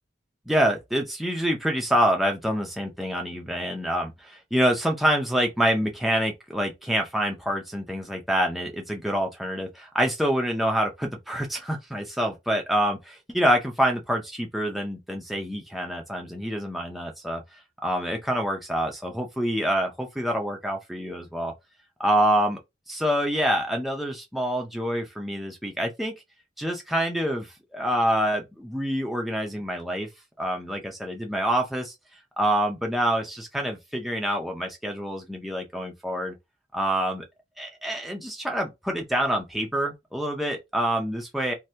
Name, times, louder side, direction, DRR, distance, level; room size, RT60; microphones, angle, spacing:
voice 1, 0.5-17.4 17.8-21.5 22.0-22.6 22.9-26.1 26.6-30.1 30.4-31.9 32.4-36.3 36.7-37.2 37.6-41.5, equal, ahead, 0.5 m, -26 dB
2.7 x 2.6 x 3.2 m
head